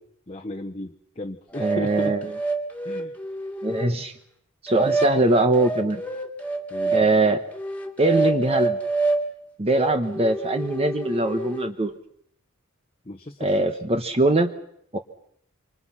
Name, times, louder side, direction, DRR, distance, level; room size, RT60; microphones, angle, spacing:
voice 1, 0.3-2.3 2.8-3.1 6.7-7.1 13.0-13.7, left 1 dB, 30° left, 2 dB, 1.1 m, -35 dB
sound 1, 1.5-4.0 4.7-7.1 7.5-9.3 9.7-11.7, right 2 dB, 5° left, 2.2 m, -27 dB
voice 2, 1.6-2.2 3.6-4.1 4.6-6.0 6.9-7.4 8.0-8.8 9.6-11.9 13.4-14.5 14.9-15.0, right 2 dB, 30° right, 7 dB, 1.1 m, -21 dB
26.0 x 25.5 x 5.8 m, 0.70 s
head